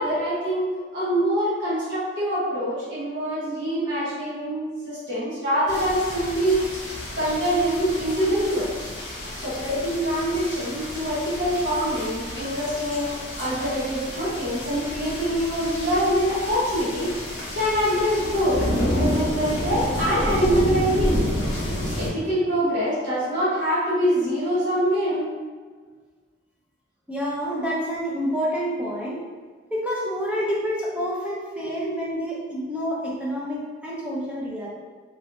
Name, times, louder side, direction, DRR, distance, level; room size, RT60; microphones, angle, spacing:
voice 1, 0.0-6.7 7.1-8.7 9.4-17.1 17.5-21.3 21.9-25.3, equal, 70° right, -10 dB, 1.1 m, -24 dB
sound 1, 5.7-22.1, left 1 dB, 60° left, 1.0 m, -30 dB
voice 2, 27.1-29.2 29.7-34.7, equal, 5° right, -6 dB, 0.5 m, -28 dB
3.0 x 2.6 x 2.9 m, 1.5 s
head